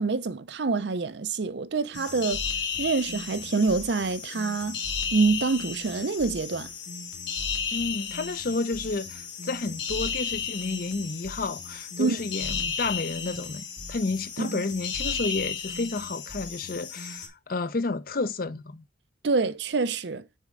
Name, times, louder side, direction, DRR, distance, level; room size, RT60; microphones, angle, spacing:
voice 1, 0.0-2.4 2.8-4.8 5.1-6.7 12.0-12.2 14.4-14.6 19.2-20.3, right 4 dB, 65° right, 0.5 m, -26 dB
sound 1, 1.9-17.3, left 6 dB, 70° left, 1.7 m, -34 dB
voice 2, 7.7-18.8, left 3 dB, 50° left, 0.6 m, -31 dB
6.5 x 4.3 x 3.7 m
head